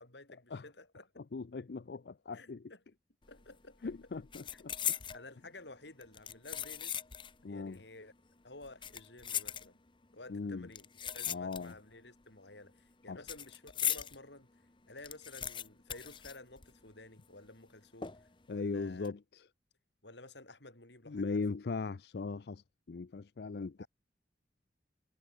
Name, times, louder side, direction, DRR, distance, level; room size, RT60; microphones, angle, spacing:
voice 1, 0.0-1.2 2.3-2.8 3.3-3.9 4.5-4.6 5.1-7.0 7.5-8.1 8.4-9.8 10.1-19.1 20.0-21.4 23.8-23.9, left 2 dB, 80° left, 7.3 m, -53 dB
voice 2, 1.2-2.7 3.8-4.9 7.4-7.8 10.3-10.7 11.3-11.8 13.1-13.2 18.5-19.5 21.1-23.8, left 4 dB, 60° left, 0.5 m, -39 dB
sound 1, 3.3-3.6 3.8-5.2 6.0-7.4 7.7-7.8 8.6-10.0 10.7-11.9 12.2-14.2 14.6-14.7 14.8-17.0 17.2-17.3 18.0-18.4 18.9-19.1, left 9 dB, 30° left, 0.9 m, -39 dB
head